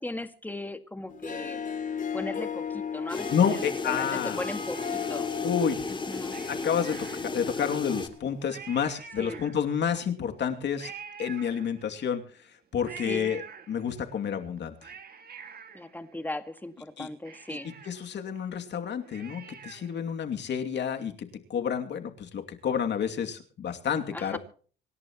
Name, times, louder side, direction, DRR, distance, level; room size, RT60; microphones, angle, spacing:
voice 1, 0.0-1.6 2.1-5.4 5.9-6.4 9.2-9.4 13.0-13.3 15.7-17.7 24.1-24.4, left 1 dB, 10° left, 9 dB, 1.9 m, -38 dB
Harp, 1.1-8.5, left 7 dB, 40° left, 2.8 m, -37 dB
sound 1, 3.1-8.1, left 3 dB, 25° left, 2.4 m, -35 dB
voice 2, 3.3-4.4 5.4-5.8 6.5-10.9 11.2-12.2 12.7-13.4 13.7-14.7 17.0-17.1 17.9-24.4, left 7 dB, 60° left, 5 dB, 2.7 m, -29 dB
Cat, 3.9-5.4 6.3-7.7 8.1-8.2 8.4-9.9 10.8-12.1 12.8-14.1 14.6-16.6 16.9-17.0 17.3-20.0 20.4-20.5, right 7 dB, 50° right, 2.1 m, -47 dB
26.5 x 11.0 x 3.1 m, 0.42 s
cardioid pair, 90°, 20 cm